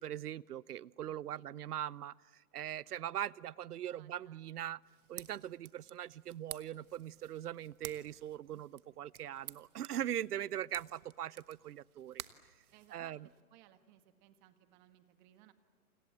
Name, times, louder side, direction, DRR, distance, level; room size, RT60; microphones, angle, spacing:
voice 1, 0.0-4.8 5.1-12.2 12.9-13.3, right 11 dB, 85° right, 23 dB, 0.7 m, -41 dB
voice 2, 1.1-1.5 2.9-3.1 3.9-4.5 8.5-8.6 9.2-9.7 12.7-15.5, right 13 dB, 30° right, 9 dB, 1.8 m, -64 dB
sound 1, 4.8-13.4, right 10 dB, 65° right, 1.4 m, -53 dB
29.0 x 26.5 x 7.5 m, 1.5 s
hypercardioid pair, 150°, 45 cm